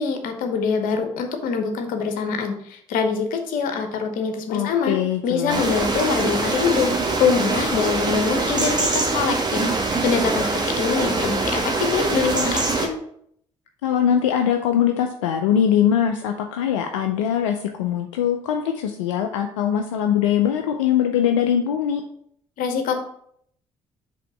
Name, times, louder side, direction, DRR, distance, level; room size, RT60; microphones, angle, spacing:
voice 1, 0.0-4.9 5.2-6.9 7.2-9.6 10.0-13.0 22.6-22.9, left 5 dB, 65° left, 6 dB, 0.9 m, -24 dB
voice 2, 4.5-5.6 13.8-22.0, left 9 dB, 85° left, 5 dB, 0.4 m, -22 dB
sound 1, 5.5-12.9, right 3 dB, 25° right, 1.3 m, -23 dB
5.0 x 3.6 x 5.4 m, 0.68 s
hypercardioid pair, 50°, 16 cm